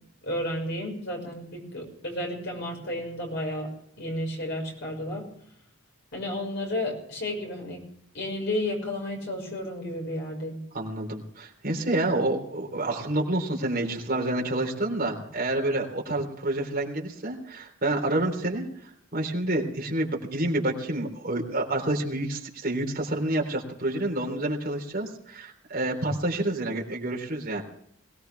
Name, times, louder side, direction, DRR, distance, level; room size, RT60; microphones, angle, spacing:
voice 1, 0.2-3.7 4.0-5.3 6.1-7.8 8.1-10.6, left 1 dB, 55° left, 1 dB, 5.8 m, -32 dB
voice 2, 10.7-27.6, right 1 dB, 45° right, 0 dB, 3.7 m, -28 dB
22.0 x 18.0 x 3.5 m, 0.69 s
head